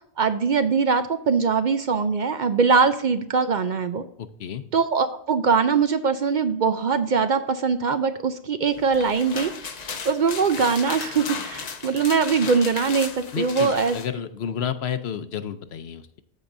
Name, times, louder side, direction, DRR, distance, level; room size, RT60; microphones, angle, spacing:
voice 1, 0.2-4.0 4.7-13.1 13.4-13.9, right 5 dB, 55° right, 10 dB, 0.6 m, -22 dB
voice 2, 4.2-4.6 13.3-16.2, left 8 dB, 75° left, 11 dB, 0.9 m, -31 dB
sound 1, 8.8-14.1, left 5 dB, 45° left, 0.7 m, -35 dB
14.0 x 4.8 x 2.6 m, 0.69 s
omnidirectional pair, 1.1 m